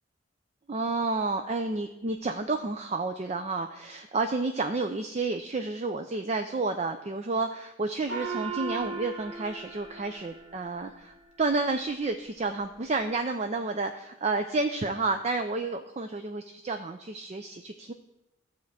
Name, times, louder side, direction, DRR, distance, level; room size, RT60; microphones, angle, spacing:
voice 1, 0.7-17.9, right 3 dB, 30° right, 7 dB, 0.4 m, -30 dB
Gong, 8.1-11.0, right 4 dB, 85° right, 2.3 m, -37 dB
12.0 x 4.4 x 7.4 m, 0.96 s
head